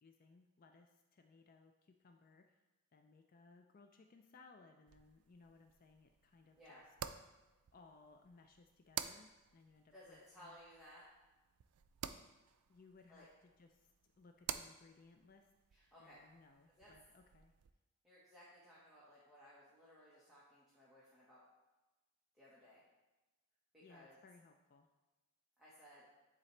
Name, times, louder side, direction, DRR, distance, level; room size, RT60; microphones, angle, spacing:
voice 1, 0.0-2.6 2.9-6.8 7.7-10.6 12.7-15.5 16.0-17.5 23.8-24.9, left 3 dB, 40° left, 5 dB, 0.4 m, -64 dB
sound 1, 4.9-17.7, right 10 dB, 80° right, 0.4 m, -51 dB
voice 2, 9.9-11.0 13.1-13.3 15.7-16.2 16.8-16.9 18.0-21.4 22.3-22.8 23.7-24.2 25.6-26.1, equal, ahead, -10 dB, 1.3 m, -60 dB
9.9 x 4.0 x 3.2 m, 1.1 s
head